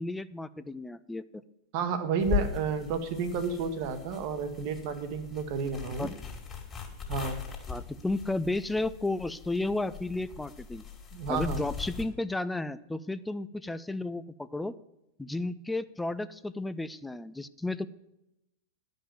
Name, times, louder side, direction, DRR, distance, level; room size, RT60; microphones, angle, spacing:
voice 1, 0.0-1.4 6.0-6.1 7.7-10.8 11.3-14.8 15.2-17.9, left 2 dB, 5° left, 14 dB, 0.4 m, -33 dB
voice 2, 1.7-6.1 7.1-7.4 11.1-11.7, right 5 dB, 45° right, 8 dB, 1.1 m, -31 dB
sound 1, 2.2-12.1, left 7 dB, 20° left, 2.3 m, -39 dB
11.0 x 5.3 x 7.4 m, 0.88 s
figure-of-eight pair, 90°, 0 cm